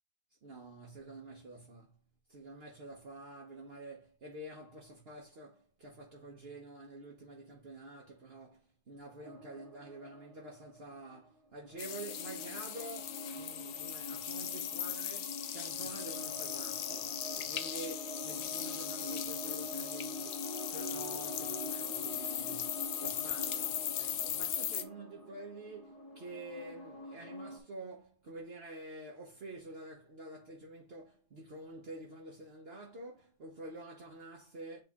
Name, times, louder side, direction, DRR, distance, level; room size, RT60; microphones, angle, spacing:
voice 1, 0.4-2.0 2.3-34.8, right 2 dB, 50° right, 1.2 m, -48 dB
sound 1, 9.2-11.1 11.6-27.6, left 1 dB, 30° left, 1.5 m, -45 dB
sound 2, 11.8-24.8, left 10 dB, 90° left, 1.0 m, -38 dB
7.9 x 3.3 x 3.6 m
omnidirectional pair, 1.4 m